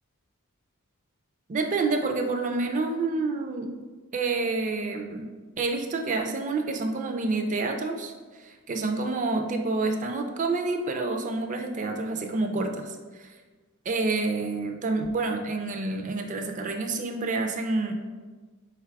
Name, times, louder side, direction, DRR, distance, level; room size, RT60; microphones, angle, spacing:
voice 1, 1.5-3.7 4.1-5.3 5.6-8.1 8.4-13.3 13.9-17.9, right 3 dB, 35° right, 3 dB, 0.4 m, -28 dB
3.9 x 2.3 x 4.5 m, 1.4 s
head